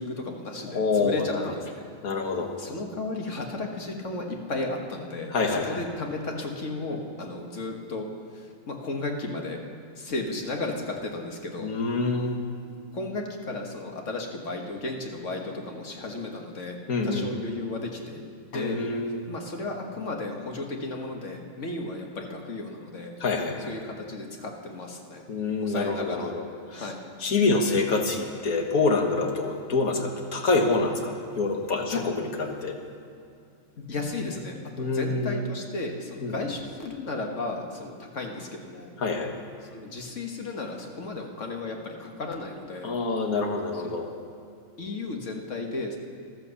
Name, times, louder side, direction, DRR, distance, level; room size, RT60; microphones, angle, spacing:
voice 1, 0.0-1.8 2.6-8.1 8.4-9.6 10.0-11.7 12.9-16.8 17.0-18.2 18.5-18.8 19.3-23.1 23.7-25.2 25.6-26.3 26.7-27.1 31.9-32.0 33.9-38.9 39.7-42.9 43.8-44.0 44.8-46.0, left 2 dB, 55° left, 2 dB, 1.8 m, -34 dB
voice 2, 0.7-1.5 2.0-2.5 5.3-5.9 11.6-12.4 16.9-17.4 18.5-19.3 23.2-23.7 25.3-26.9 27.2-32.8 34.8-35.4 36.2-36.4 39.0-39.3 42.8-44.1, left 3 dB, 75° left, 3 dB, 1.8 m, -26 dB
14.0 x 12.5 x 7.0 m, 2.4 s
omnidirectional pair, 1.5 m